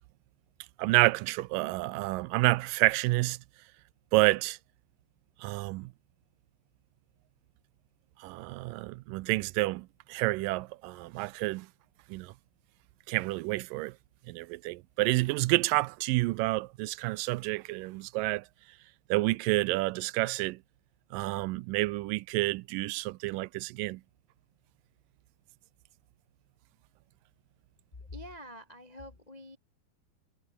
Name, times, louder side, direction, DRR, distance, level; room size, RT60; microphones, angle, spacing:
voice 1, 0.8-3.4 4.1-4.6 5.4-5.9 8.2-11.7 12.1-12.3 13.1-14.0 14.3-18.5 19.1-20.6 21.1-24.0, right 20 dB, 85° right, 2.2 m, -29 dB
voice 2, 28.0-29.6, left 1 dB, 65° left, 0.4 m, -46 dB
omnidirectional pair, 3.9 m